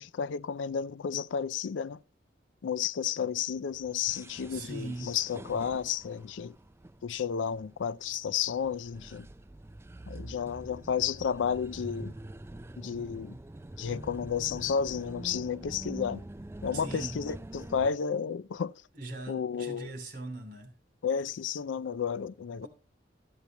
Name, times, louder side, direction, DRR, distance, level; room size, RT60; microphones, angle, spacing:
voice 1, 0.0-2.0 2.6-6.6 7.0-9.3 10.1-12.1 12.8-13.4 13.8-16.2 16.6-18.7 19.3-19.9 21.0-22.7, left 7 dB, 85° left, 0.4 m, -32 dB
sound 1, 3.7-17.9, right 1 dB, 15° right, 0.4 m, -45 dB
voice 2, 4.5-5.1 16.7-17.2 18.9-20.7 22.6-22.7, right 2 dB, 50° right, 3.0 m, -40 dB
13.0 x 8.2 x 3.0 m
head